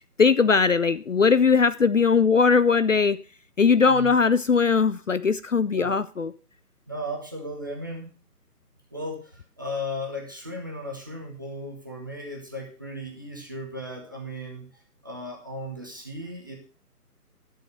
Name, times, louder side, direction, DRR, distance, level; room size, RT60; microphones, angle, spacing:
voice 1, 0.2-3.2 3.6-6.3, left 5 dB, 55° left, 0.5 m, -20 dB
voice 2, 6.9-8.1 8.9-14.7 15.0-16.5, equal, 15° right, 0.8 m, -36 dB
11.0 x 6.4 x 5.1 m
figure-of-eight pair, 155°, 48 cm